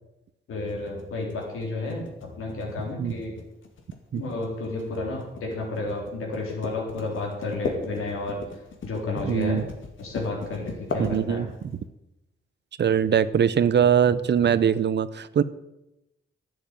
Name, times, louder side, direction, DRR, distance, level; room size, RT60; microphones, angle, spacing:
voice 1, 0.5-3.3 4.1-8.4 8.8-9.6 10.0-11.5, left 2 dB, 85° left, -1 dB, 3.8 m, -31 dB
sound 1, 0.7-11.7, left 4 dB, 65° left, 2.2 m, -37 dB
voice 2, 9.2-9.7 11.0-11.7 12.8-15.4, right 8 dB, 55° right, 16 dB, 0.7 m, -22 dB
10.5 x 7.6 x 9.0 m, 0.91 s
cardioid pair, 75°, 21 cm